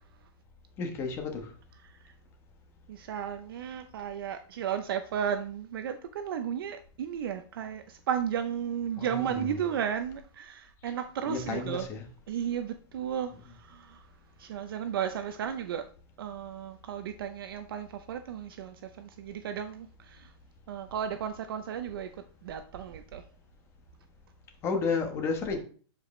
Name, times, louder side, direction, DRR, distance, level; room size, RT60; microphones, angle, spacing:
voice 1, 0.8-1.5 9.0-9.5 11.3-12.0 24.6-25.6, left 4 dB, 15° left, 1.2 m, -32 dB
voice 2, 2.9-11.9 12.3-14.1 14.4-15.8 16.2-20.3 20.7-22.1 22.4-23.2, right 8 dB, 55° right, 0.7 m, -34 dB
12.0 x 4.9 x 3.2 m
supercardioid pair, 175°, 14 cm